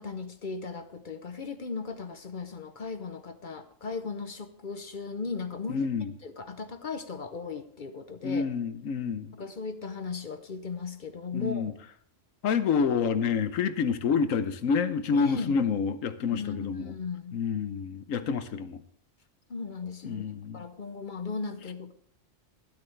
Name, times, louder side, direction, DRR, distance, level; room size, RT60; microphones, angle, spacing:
voice 1, 0.0-5.9 6.2-8.5 9.3-11.7 15.1-15.6 16.3-17.4 19.5-20.2 20.5-21.9, left 4 dB, 45° left, 9 dB, 0.8 m, -37 dB
voice 2, 5.7-6.1 8.2-9.3 11.3-11.7 12.4-16.9 17.3-18.8 20.0-20.6, left 6 dB, 85° left, 11 dB, 1.2 m, -28 dB
12.5 x 12.0 x 3.3 m, 0.64 s
omnidirectional pair, 1.3 m